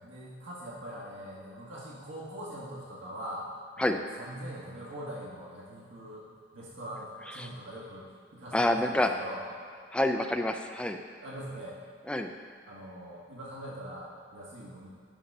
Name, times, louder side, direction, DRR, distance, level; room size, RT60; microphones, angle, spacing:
voice 1, 0.0-3.5 3.8-9.4 11.2-11.8 12.7-14.9, right 1 dB, 80° right, -6 dB, 1.8 m, -42 dB
voice 2, 8.5-9.1 9.9-11.0 12.1-12.3, left 1 dB, 5° left, 5 dB, 0.4 m, -27 dB
11.0 x 4.0 x 5.5 m, 2.2 s
head